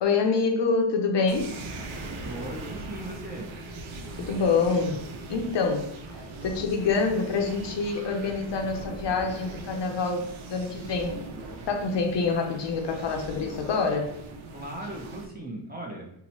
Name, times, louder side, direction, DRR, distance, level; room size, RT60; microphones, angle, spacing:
voice 1, 0.0-1.5 4.2-5.0 5.3-5.9 6.4-11.1 11.7-14.1, left 4 dB, 65° left, 3 dB, 0.6 m, -26 dB
sound 1, 1.3-15.3, right 2 dB, 80° right, 0.6 m, -40 dB
voice 2, 2.2-3.5 14.5-16.1, right 1 dB, 20° right, -1 dB, 0.7 m, -38 dB
2.9 x 2.1 x 4.1 m, 0.75 s
wide cardioid pair, 115°, 47 cm